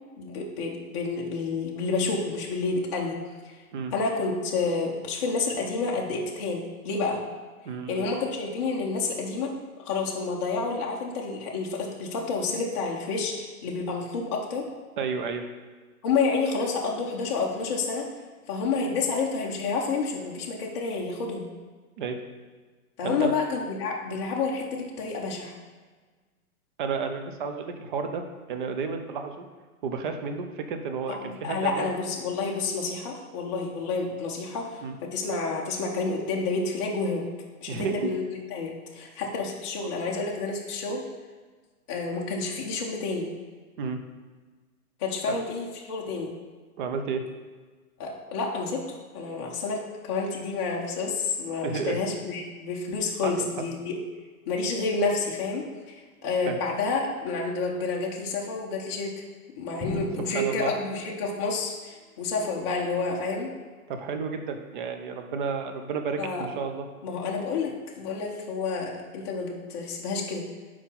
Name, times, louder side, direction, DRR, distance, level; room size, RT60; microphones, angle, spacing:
voice 1, 0.2-3.6 3.9-7.2 7.9-9.5 9.8-14.7 16.0-18.1 18.5-21.5 23.0-25.5 31.2-37.2 37.6-38.2 38.5-41.0 41.9-43.3 45.0-46.3 48.0-49.8 50.0-53.9 54.5-59.1 59.6-63.5 66.2-66.5 67.0-70.4, left 4 dB, 20° left, -3 dB, 0.5 m, -29 dB
voice 2, 7.6-8.1 15.0-15.4 22.0-22.2 23.0-23.3 26.8-28.2 28.5-29.5 29.8-31.9 34.8-35.0 37.7-38.1 43.8-44.0 45.3-45.4 46.8-47.2 51.6-52.0 53.2-53.3 56.5-56.6 59.9-60.0 60.3-60.7 63.9-66.9, right 5 dB, 35° right, 6 dB, 0.6 m, -31 dB
Drum, 59.8-61.8, left 1 dB, ahead, 1.3 m, -39 dB
4.5 x 4.3 x 5.5 m, 1.4 s
hypercardioid pair, 145°, 44 cm